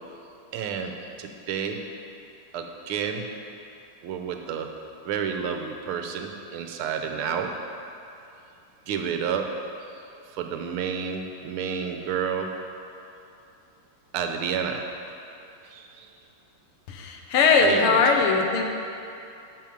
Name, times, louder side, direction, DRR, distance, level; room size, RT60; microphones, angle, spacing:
voice 1, 0.5-1.8 2.5-3.3 4.0-4.7 5.0-7.5 8.9-9.5 10.4-12.6 14.1-14.9 15.7-16.1 17.6-18.0, right 7 dB, 80° right, 4 dB, 1.6 m, -30 dB
voice 2, 16.9-18.7, left 4 dB, 80° left, 3 dB, 1.8 m, -20 dB
10.5 x 7.1 x 5.1 m, 2.7 s
omnidirectional pair, 2.4 m